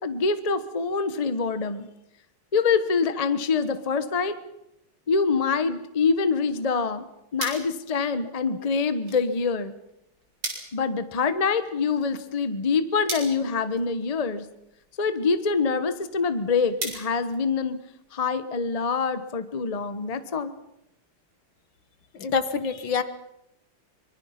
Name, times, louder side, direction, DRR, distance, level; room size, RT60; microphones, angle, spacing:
voice 1, 0.0-1.9 2.5-4.4 5.1-7.1 7.3-9.7 10.7-14.5 15.0-17.8 18.1-20.5, left 5 dB, 25° left, 11 dB, 0.9 m, -25 dB
sound 1, 6.7-18.1, right 2 dB, 70° right, 6.0 m, -41 dB
voice 2, 22.1-23.0, left 5 dB, 65° left, 11 dB, 2.0 m, -26 dB
25.0 x 23.5 x 5.9 m, 0.86 s
omnidirectional pair, 2.3 m